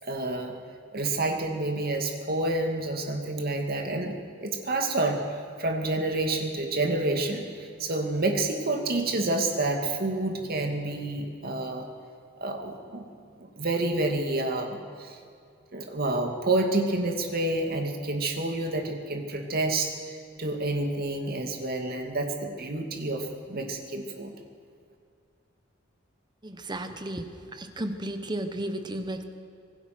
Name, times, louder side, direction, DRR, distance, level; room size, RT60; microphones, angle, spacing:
voice 1, 0.0-0.5 0.9-5.2 5.6-11.9 12.4-13.1 13.4-15.2 15.7-24.3, right 2 dB, 50° right, 4 dB, 2.4 m, -29 dB
voice 2, 26.4-27.3 27.5-29.2, right 1 dB, 20° right, 8 dB, 1.2 m, -33 dB
25.5 x 18.0 x 6.1 m, 2.3 s
head